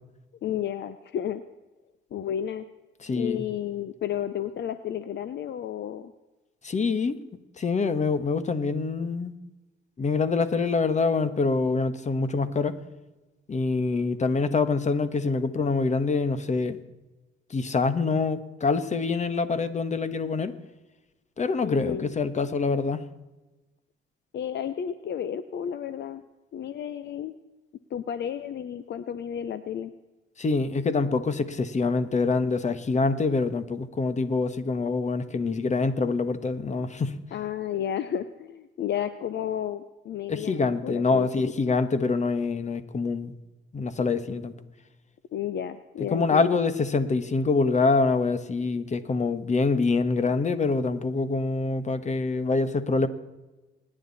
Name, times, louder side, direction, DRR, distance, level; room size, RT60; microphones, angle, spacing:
voice 1, 0.4-1.4 2.1-2.7 3.1-6.1 21.6-22.1 24.3-26.2 26.5-27.3 27.9-29.9 37.3-41.5 45.3-46.6, left 9 dB, 60° left, 12 dB, 0.8 m, -32 dB
voice 2, 3.0-3.4 6.6-7.2 7.6-9.3 10.0-12.8 13.5-16.8 17.5-20.5 21.4-23.0 30.4-37.2 40.3-43.3 43.7-44.5 46.0-53.1, left 4 dB, 35° left, 12 dB, 1.4 m, -25 dB
27.0 x 10.5 x 4.2 m, 1.1 s
cardioid pair, 90°, 20 cm